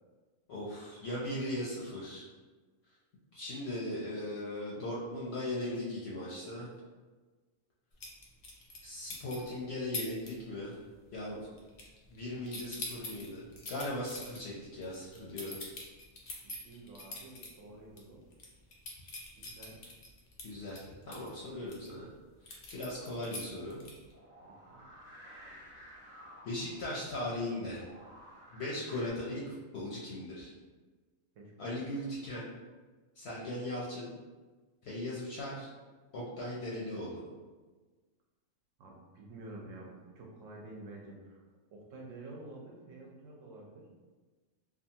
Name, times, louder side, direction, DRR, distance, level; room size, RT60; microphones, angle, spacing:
voice 1, 0.5-2.3 3.3-6.7 8.8-10.8 11.1-11.4 12.1-15.6 20.4-22.1 22.5-23.8 26.4-27.9 28.5-30.5 31.6-32.5 33.2-34.2 34.8-35.7 36.1-37.2, left 1 dB, 65° left, -6 dB, 0.7 m, -38 dB
sound 1, 8.0-8.8 9.1-9.5 9.9-10.3 10.6-10.9 11.2-12.2 12.4-17.5 17.9-18.0 18.3-21.9 22.5-24.1, left 2 dB, 85° left, 0.3 m, -43 dB
voice 2, 16.4-18.2 19.4-19.8 24.4-24.8 31.4-31.7 38.8-41.4 41.7-43.9, right 2 dB, 75° right, -1 dB, 1.0 m, -49 dB
sound 2, 24.1-29.1, equal, 50° right, 0.9 m, -54 dB
2.6 x 2.3 x 2.7 m, 1.3 s
omnidirectional pair, 1.4 m